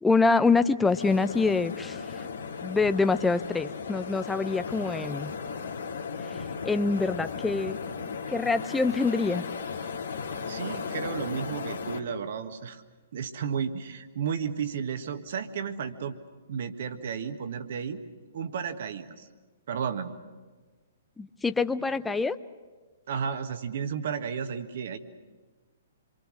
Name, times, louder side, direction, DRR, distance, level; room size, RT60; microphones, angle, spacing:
voice 1, 0.0-2.2 2.6-5.3 6.6-7.7 8.3-9.4 21.2-22.4, left 4 dB, 10° left, 11 dB, 0.6 m, -25 dB
sound 1, 0.8-12.0, left 5 dB, 70° left, 2.1 m, -36 dB
voice 2, 10.4-12.8 13.1-16.2 16.5-18.0 18.3-19.3 19.7-20.1 23.1-25.0, right 7 dB, 55° right, 8 dB, 1.7 m, -33 dB
27.0 x 24.0 x 6.4 m, 1.3 s
figure-of-eight pair, 120°, 0 cm